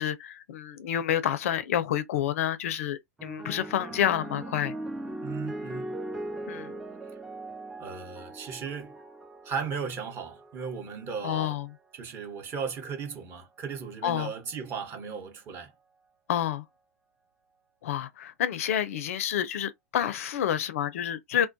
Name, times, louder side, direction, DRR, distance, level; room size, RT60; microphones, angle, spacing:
voice 1, 0.0-4.7 6.5-6.7 11.2-11.7 14.0-14.3 16.3-16.6 17.8-21.5, left 10 dB, 65° left, 0.4 m, -29 dB
sound 1, 3.2-11.8 12.7-13.1, right 1 dB, 5° right, 0.3 m, -40 dB
voice 2, 5.2-6.0 7.8-9.0 9.4-11.6 11.9-15.7, right 6 dB, 30° right, 0.9 m, -36 dB
2.2 x 2.2 x 2.5 m
hypercardioid pair, 120°, 8 cm